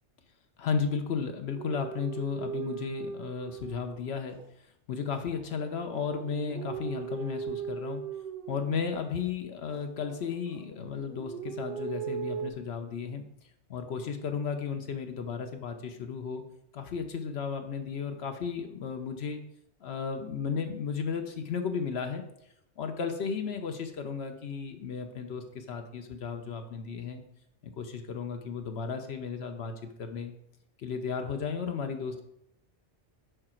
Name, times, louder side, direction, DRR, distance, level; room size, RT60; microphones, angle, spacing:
voice 1, 0.6-4.4 4.9-8.0 8.5-13.2 13.7-16.4 16.7-19.4 19.8-22.2 22.8-27.2 27.6-29.7 30.0-30.3 30.8-32.2, left 6 dB, 70° left, 6 dB, 0.9 m, -34 dB
sound 1, 1.6-4.5 5.0-9.2 9.7-10.6 10.9-12.5, right 7 dB, 60° right, 0.7 m, -39 dB
6.8 x 4.8 x 4.4 m, 0.77 s
omnidirectional pair, 1.2 m